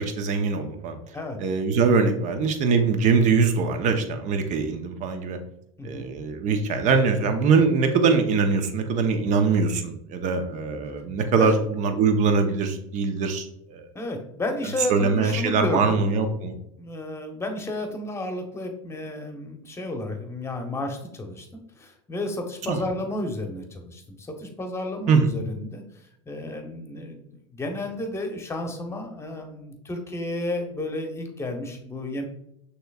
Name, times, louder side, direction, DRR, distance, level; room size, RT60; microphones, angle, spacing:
voice 1, 0.0-1.0 1.4-5.4 5.8-13.9 14.9-16.6 22.6-22.8 25.1-25.3, right 5 dB, 50° right, 7 dB, 0.8 m, -22 dB
voice 2, 11.3-11.7 13.9-16.1 16.8-25.8 26.3-32.2, left 1 dB, 15° left, 4 dB, 0.9 m, -32 dB
6.2 x 3.0 x 2.4 m, 0.77 s
supercardioid pair, 100°, 16 cm